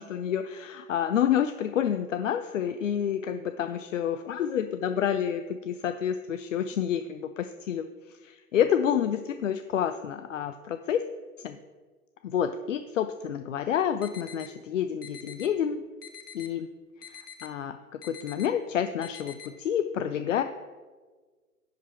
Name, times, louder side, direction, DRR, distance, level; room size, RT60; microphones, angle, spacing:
voice 1, 0.0-11.0 11.4-11.6 12.2-15.8 16.3-16.7 17.1-17.8 18.0-20.4, left 9 dB, 55° left, 9 dB, 0.5 m, -29 dB
sound 1, 14.0-14.5 15.0-15.5 16.0-16.5 17.0-17.5 18.0-18.5 19.0-19.5, left 8 dB, 80° left, 1.2 m, -45 dB
10.5 x 5.2 x 4.2 m, 1.4 s
figure-of-eight pair, 125°, 46 cm